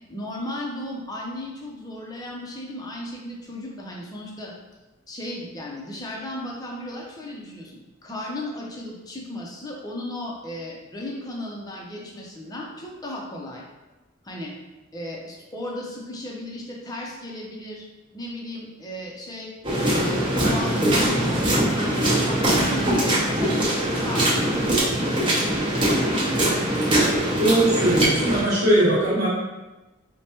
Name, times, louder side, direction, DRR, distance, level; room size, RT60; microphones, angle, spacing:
voice 1, 0.1-4.5 5.1-13.6 14.2-14.5 14.9-17.8 18.1-19.5 19.9-25.4, left 1 dB, 20° left, -2 dB, 0.6 m, -35 dB
sound 1, 19.6-28.4, right 1 dB, 25° right, 0.9 m, -22 dB
voice 2, 27.4-29.3, right 1 dB, 55° right, -10 dB, 1.2 m, -20 dB
4.5 x 2.2 x 2.9 m, 1.1 s
head